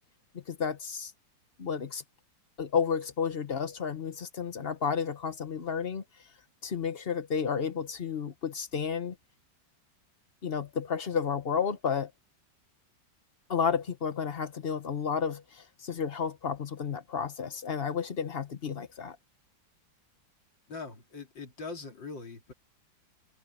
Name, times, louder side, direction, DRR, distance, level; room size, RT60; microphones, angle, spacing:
voice 1, 0.3-1.1 1.6-2.0 2.6-6.0 6.6-9.2 10.4-12.1 13.5-19.2, left 6 dB, 35° left, 1.1 m, -31 dB
voice 2, 20.7-22.5, left 4 dB, 70° left, 3.5 m, -42 dB
omnidirectional pair, 2.1 m